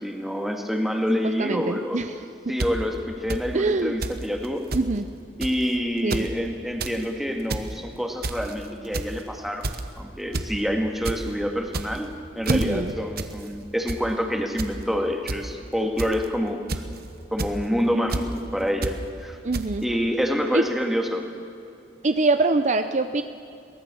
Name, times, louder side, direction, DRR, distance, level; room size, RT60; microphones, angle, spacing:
voice 1, 0.0-2.0 2.5-4.6 5.4-9.7 10.0-12.1 12.4-16.6 17.3-19.4 19.8-21.3, equal, ahead, 3 dB, 2.0 m, -27 dB
voice 2, 1.4-2.2 3.5-3.9 4.7-5.0 6.0-6.3 12.5-12.9 19.4-19.8 20.5-20.6 22.0-23.2, right 3 dB, 40° right, 9 dB, 0.6 m, -23 dB
sound 1, 2.6-2.7 3.3-3.4 4.0-4.2 4.4-4.5 4.7-4.9 5.4-5.6 6.0-6.3 6.6-7.0 7.3-7.7 8.2-8.5 8.9-9.2 9.6-9.9 10.3-10.5 10.8-11.2 11.7-12.1 12.4-12.7 13.2-13.3 13.6-14.0 14.6-14.7 15.3-15.4 16.0-16.2 16.7-17.0 17.4-17.5 18.1-18.2 18.8-19.0 19.5-19.6, right 2 dB, 55° right, 1.1 m, -28 dB
23.0 x 18.0 x 7.0 m, 2.7 s
head